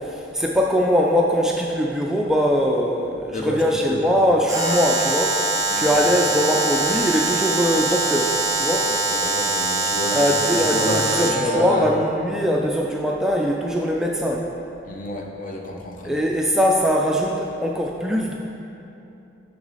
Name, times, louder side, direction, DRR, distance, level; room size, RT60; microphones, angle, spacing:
voice 1, 0.0-5.4 5.7-8.9 10.1-11.3 11.6-14.4 16.0-18.3, equal, 5° right, -1 dB, 0.3 m, -21 dB
voice 2, 3.3-4.1 4.6-4.7 5.7-6.0 9.1-11.9 14.8-16.2, left 1 dB, 45° left, 0 dB, 0.8 m, -29 dB
Alarm, 4.5-11.5, right 2 dB, 20° right, 0.8 m, -23 dB
6.1 x 6.0 x 4.0 m, 2.8 s
head